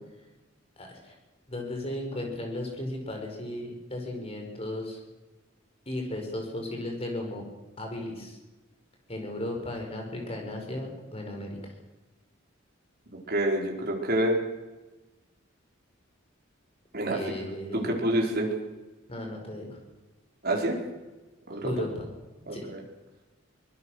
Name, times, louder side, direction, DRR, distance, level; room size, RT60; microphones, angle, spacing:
voice 1, 0.8-1.1 1.5-5.0 5.8-7.4 7.8-8.4 9.1-11.7 17.1-18.1 19.1-19.8 21.6-22.1 22.5-22.7, left 1 dB, 30° left, 2 dB, 5.2 m, -35 dB
voice 2, 13.3-14.4 16.9-17.2 17.7-18.5 20.4-20.8 21.5-21.7 22.5-22.8, right 1 dB, 45° right, 0 dB, 4.7 m, -27 dB
24.0 x 21.0 x 6.5 m, 1.1 s
head